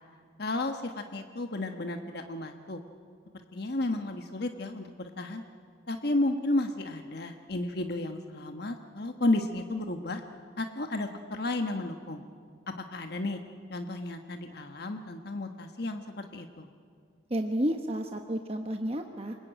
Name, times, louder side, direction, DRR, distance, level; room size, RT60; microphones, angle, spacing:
voice 1, 0.4-2.8 3.5-5.4 5.9-10.2 10.6-12.2 12.7-13.4 13.7-16.7, left 2 dB, 50° left, 6 dB, 1.2 m, -32 dB
voice 2, 17.3-19.3, equal, 30° right, 5 dB, 1.0 m, -31 dB
29.0 x 20.5 x 9.1 m, 2.2 s
head